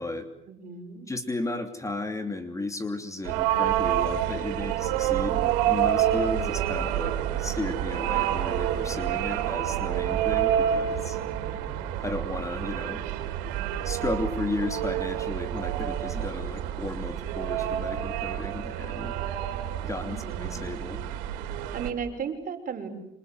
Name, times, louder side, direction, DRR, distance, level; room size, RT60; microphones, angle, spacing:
voice 1, 0.5-1.1 11.2-11.8 20.0-20.6 21.7-22.9, right 6 dB, 45° right, 4 dB, 6.4 m, -36 dB
voice 2, 1.1-11.2 12.0-13.0 13.8-19.2 19.8-21.0, left 2 dB, 15° left, 7 dB, 2.9 m, -34 dB
sound 1, 3.2-21.9, right 11 dB, 90° right, 4.0 m, -28 dB
27.0 x 26.5 x 8.0 m, 0.84 s
supercardioid pair, 95°, 20 cm